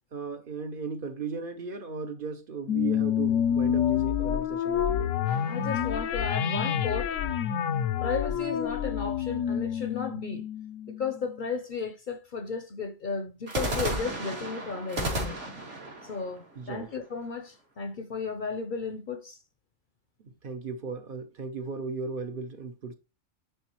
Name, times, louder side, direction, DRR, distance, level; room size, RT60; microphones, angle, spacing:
voice 1, 0.1-5.1 8.4-8.5 16.6-16.9 20.2-22.9, right 5 dB, 50° right, 0.8 m, -36 dB
sound 1, 2.7-11.4, left 9 dB, 85° left, 1.0 m, -28 dB
sound 2, 5.2-6.7 13.5-17.4, right 1 dB, 70° right, 2.6 m, -35 dB
voice 2, 5.5-7.2 8.0-10.5 11.0-15.4 16.0-19.4, left 5 dB, 50° left, 0.7 m, -34 dB
10.0 x 3.9 x 3.0 m
omnidirectional pair, 1.3 m